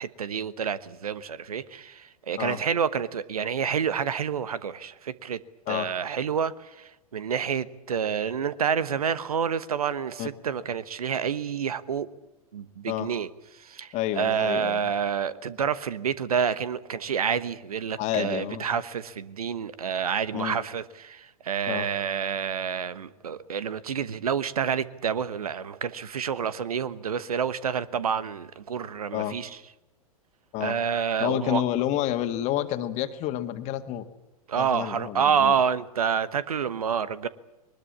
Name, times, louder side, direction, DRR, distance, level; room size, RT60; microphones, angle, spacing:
voice 1, 0.0-5.4 5.7-12.1 12.5-13.3 13.6-29.5 30.6-31.6 34.5-37.3, right 7 dB, 75° right, 16 dB, 1.1 m, -28 dB
voice 2, 13.9-14.9 18.0-18.7 20.3-20.6 21.7-21.9 29.1-29.4 30.5-30.8 31.2-34.0 34.5-35.5, left 12 dB, 35° left, 8 dB, 1.9 m, -29 dB
21.0 x 20.5 x 8.5 m, 0.96 s
figure-of-eight pair, 100°, 19 cm